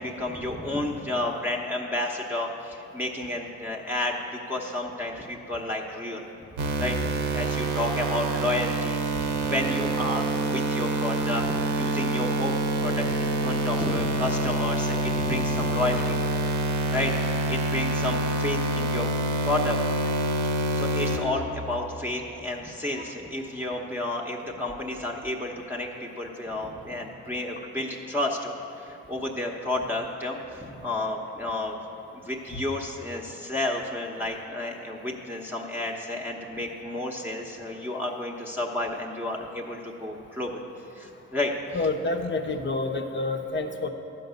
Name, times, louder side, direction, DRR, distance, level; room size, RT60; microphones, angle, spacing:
voice 1, 0.0-6.2 6.8-16.2 16.9-19.1 19.4-19.8 20.7-31.8 32.2-40.6 41.0-41.5, left 1 dB, 5° right, -1 dB, 0.9 m, -31 dB
sound 1, 6.6-21.2, right 1 dB, 85° right, 1.1 m, -26 dB
voice 2, 41.7-43.9, left 3 dB, 40° left, 6 dB, 0.9 m, -28 dB
11.5 x 5.4 x 8.1 m, 2.9 s
cardioid pair, 90°, 30 cm